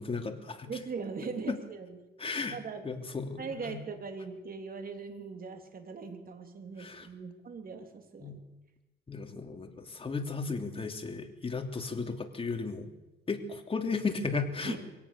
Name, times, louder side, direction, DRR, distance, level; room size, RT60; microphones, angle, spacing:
voice 1, 0.0-0.7 1.5-1.6 2.2-2.6 2.8-3.8 6.8-7.1 8.2-8.4 9.1-12.9 13.3-14.8, left 4 dB, 30° left, 5 dB, 3.0 m, -35 dB
voice 2, 0.6-2.9 3.4-8.4 14.6-14.8, right 5 dB, 45° right, 5 dB, 3.5 m, -40 dB
22.5 x 17.5 x 6.9 m, 1.0 s
cardioid pair, 90°, 20 cm